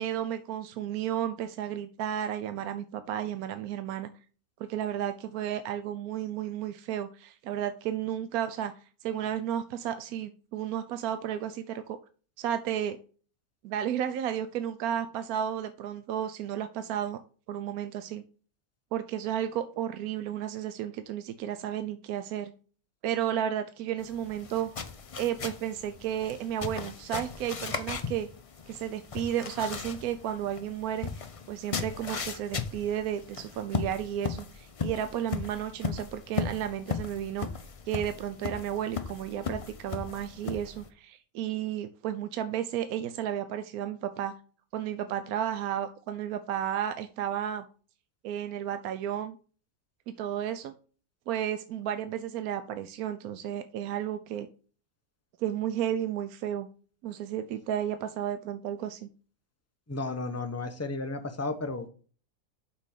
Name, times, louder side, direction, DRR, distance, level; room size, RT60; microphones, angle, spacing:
voice 1, 0.0-4.1 4.6-8.7 9.0-12.0 12.4-13.0 13.6-17.2 17.5-18.2 18.9-22.5 23.0-24.7 25.2-28.3 28.7-37.5 37.9-44.3 44.7-47.7 48.2-49.4 50.2-50.7 51.3-54.5 55.4-56.7 57.0-59.1, right 10 dB, 80° right, 10 dB, 1.1 m, -33 dB
sound 1, 24.0-40.9, left 5 dB, 55° left, 0.3 m, -37 dB
voice 2, 59.9-61.9, left 3 dB, 15° left, 6 dB, 0.6 m, -33 dB
6.0 x 4.3 x 6.3 m, 0.39 s
omnidirectional pair, 1.6 m